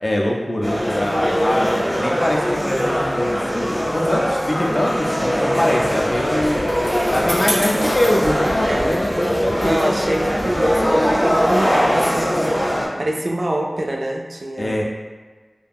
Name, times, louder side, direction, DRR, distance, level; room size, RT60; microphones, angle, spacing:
voice 1, 0.0-1.7 2.0-6.6 7.1-10.2 14.6-14.8, left 1 dB, 45° left, -2 dB, 0.5 m, -23 dB
Busy airport lobby French and English Canada, 0.6-12.9, equal, 5° left, 0.7 m, -21 dB
Bicycle, 5.7-12.4, equal, 70° left, 0.9 m, -31 dB
voice 2, 8.6-9.0 9.6-14.8, right 1 dB, 60° right, 0 dB, 0.3 m, -25 dB
2.4 x 2.2 x 3.3 m, 1.4 s
wide cardioid pair, 50°, 0 cm